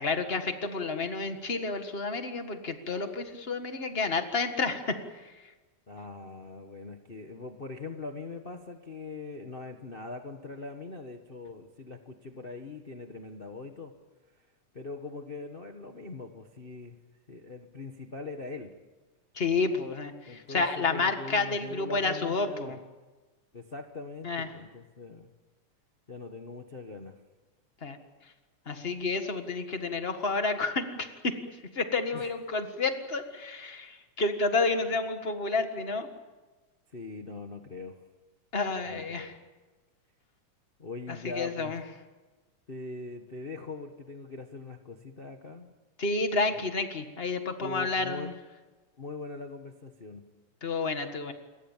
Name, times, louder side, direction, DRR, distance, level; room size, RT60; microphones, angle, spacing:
voice 1, 0.0-4.8 19.3-22.8 24.2-24.5 27.8-28.0 28.7-31.3 31.7-36.1 38.5-39.3 41.2-41.8 46.0-48.3 50.6-51.3, left 3 dB, 30° left, 7 dB, 1.3 m, -30 dB
voice 2, 5.9-13.9 14.7-17.0 17.3-18.8 20.3-22.7 23.5-25.3 26.1-27.1 32.1-32.3 36.9-38.0 38.8-39.4 40.8-41.8 42.7-45.7 47.6-48.3 49.0-50.3, left 3 dB, 70° left, 4 dB, 0.5 m, -41 dB
28.5 x 22.0 x 7.4 m, 1.2 s
omnidirectional pair, 3.4 m